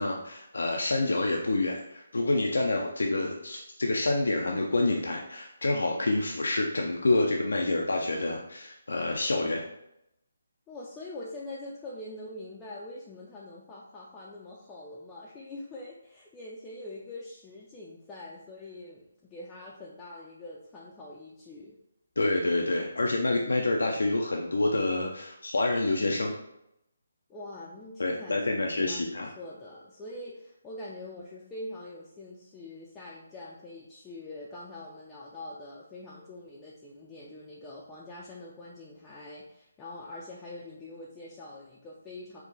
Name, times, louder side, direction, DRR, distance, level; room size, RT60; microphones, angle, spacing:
voice 1, 0.0-9.6 22.2-26.3 28.0-29.3, left 2 dB, 80° left, 1 dB, 0.5 m, -27 dB
voice 2, 10.7-21.8 27.3-42.4, left 2 dB, 15° left, -6 dB, 0.5 m, -44 dB
4.6 x 2.2 x 4.0 m, 0.81 s
figure-of-eight pair, 155°, 0 cm